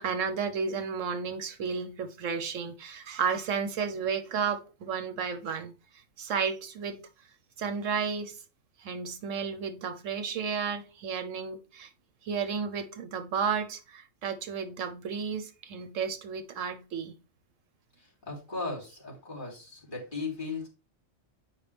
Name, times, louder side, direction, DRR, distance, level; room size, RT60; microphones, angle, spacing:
voice 1, 0.0-5.7 6.2-7.0 7.6-8.4 8.8-11.9 12.2-17.1, right 6 dB, 85° right, 1.3 m, -32 dB
voice 2, 18.3-20.7, left 3 dB, 40° left, 3.5 m, -36 dB
9.3 x 5.2 x 3.4 m
omnidirectional pair, 1.3 m